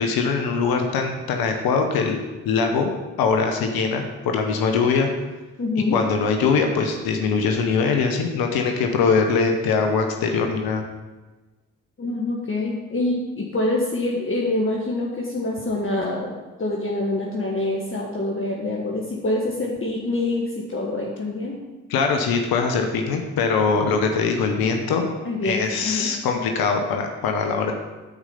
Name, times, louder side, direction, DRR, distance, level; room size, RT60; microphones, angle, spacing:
voice 1, 0.0-2.2 2.4-2.9 3.2-5.1 5.9-10.8 21.9-25.1 25.4-27.7, left 5 dB, 75° left, 4 dB, 0.9 m, -22 dB
voice 2, 5.6-6.0 12.0-21.6 25.2-26.1, left 2 dB, 35° left, -2 dB, 1.5 m, -25 dB
8.6 x 4.9 x 5.5 m, 1.2 s
hypercardioid pair, 40°, 36 cm